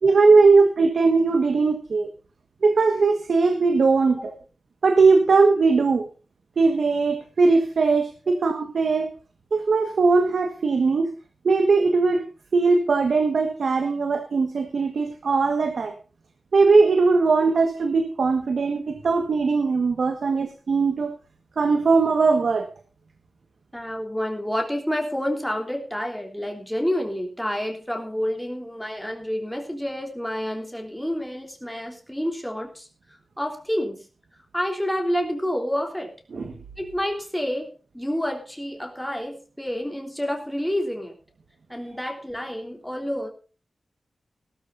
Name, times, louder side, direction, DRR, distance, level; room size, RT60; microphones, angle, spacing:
voice 1, 0.0-2.1 2.6-4.3 4.8-6.1 6.6-9.1 9.5-11.1 11.4-12.2 12.5-15.9 16.5-21.2 21.6-22.7 36.3-36.5, right 4 dB, 80° right, 7 dB, 1.5 m, -20 dB
voice 2, 23.7-32.9 33.4-34.0 34.5-36.1 36.8-37.7 37.9-41.1 41.7-43.3, equal, 5° left, 2 dB, 3.4 m, -28 dB
19.0 x 13.0 x 2.6 m, 0.35 s
wide cardioid pair, 120°, 0 cm